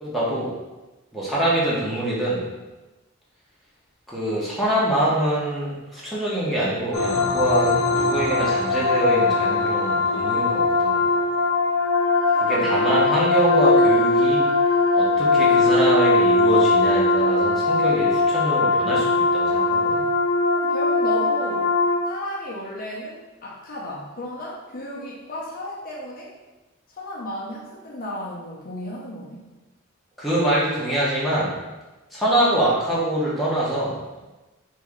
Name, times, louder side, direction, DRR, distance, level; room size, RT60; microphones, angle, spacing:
voice 1, 0.0-0.5 1.1-2.5 4.1-11.0 12.4-14.4 14.9-20.0 30.2-31.5 32.1-34.0, right 1 dB, ahead, -8 dB, 0.8 m, -24 dB
sound 1, 6.9-22.0, left 3 dB, 90° left, 0.6 m, -20 dB
voice 2, 12.3-13.0 20.5-21.7 22.0-26.4 26.9-29.5, equal, 45° left, -4 dB, 0.6 m, -34 dB
3.1 x 2.7 x 3.5 m, 1.1 s
head